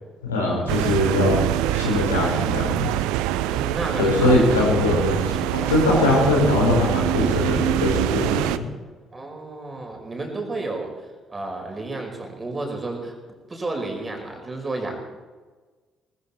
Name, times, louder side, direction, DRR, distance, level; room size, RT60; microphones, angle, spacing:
voice 1, 0.3-1.3 1.7-2.9 4.0-8.6, left 2 dB, 85° left, -2 dB, 4.4 m, -21 dB
sound 1, 0.7-8.6, right 13 dB, 70° right, 0.6 m, -24 dB
voice 2, 3.4-4.6 9.1-10.9 11.3-13.1 13.5-14.9, right 2 dB, 25° right, 2 dB, 5.2 m, -31 dB
20.0 x 14.5 x 4.4 m, 1.4 s
figure-of-eight pair, 45°, 0 cm